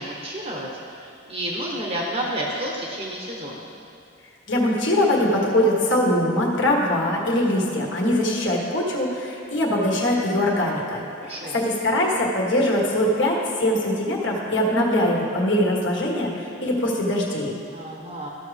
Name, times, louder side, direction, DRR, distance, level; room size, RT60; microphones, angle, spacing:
voice 1, 0.0-3.7 11.2-11.6 17.7-18.3, right 1 dB, 35° right, -2 dB, 0.9 m, -31 dB
voice 2, 4.5-11.0 11.3-17.5, left 1 dB, 65° left, -2 dB, 1.5 m, -22 dB
14.0 x 6.3 x 3.4 m, 2.5 s
head